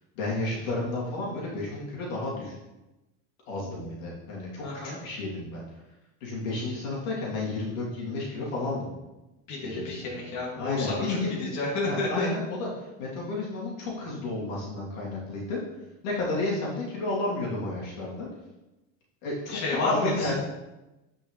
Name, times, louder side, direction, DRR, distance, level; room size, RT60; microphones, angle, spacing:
voice 1, 0.1-2.5 3.5-5.6 6.2-8.9 9.6-10.2 10.6-11.5 11.8-15.6 16.0-18.3 19.2-19.6 19.8-20.3, left 2 dB, 85° left, -5 dB, 2.9 m, -32 dB
voice 2, 4.6-5.0 9.5-12.3 19.5-20.3, left 3 dB, 45° left, -4 dB, 2.2 m, -30 dB
9.7 x 5.5 x 3.2 m, 1.0 s
supercardioid pair, 135°, 39 cm